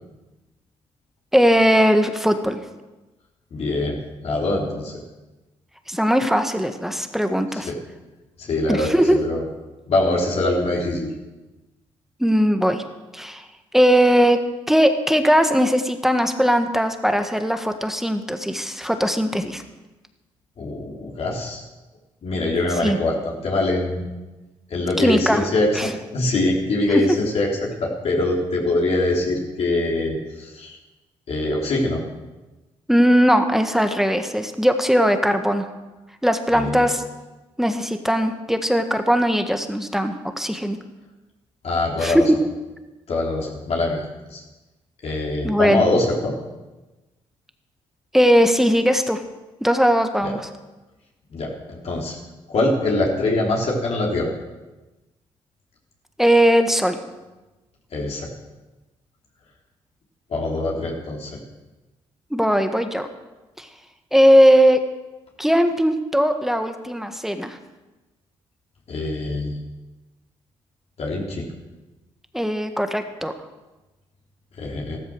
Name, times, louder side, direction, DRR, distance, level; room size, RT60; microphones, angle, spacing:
voice 1, 1.3-2.6 5.9-7.7 8.7-9.3 12.2-12.8 13.1-13.5 13.7-14.4 14.7-19.6 22.8-23.0 25.0-25.4 25.7-25.9 32.9-35.7 36.2-37.0 37.6-40.8 42.0-42.2 45.4-45.8 48.1-49.2 49.6-50.4 56.2-57.0 62.3-63.1 63.6-63.7 64.1-64.8 65.4-67.6 72.3-73.3, equal, 5° right, 7 dB, 1.6 m, -19 dB
voice 2, 3.5-5.0 7.5-7.7 8.4-9.4 9.9-11.1 20.6-21.6 22.2-24.1 24.7-30.8 31.3-32.0 36.5-36.8 41.6-42.2 43.1-44.4 45.0-46.3 50.2-50.3 51.3-52.2 52.5-54.3 57.9-58.3 60.3-61.3 68.9-69.6 71.0-71.4 74.6-75.0, left 2 dB, 60° left, -2 dB, 3.7 m, -23 dB
14.0 x 13.5 x 6.3 m, 1.1 s
supercardioid pair, 60°, 12 cm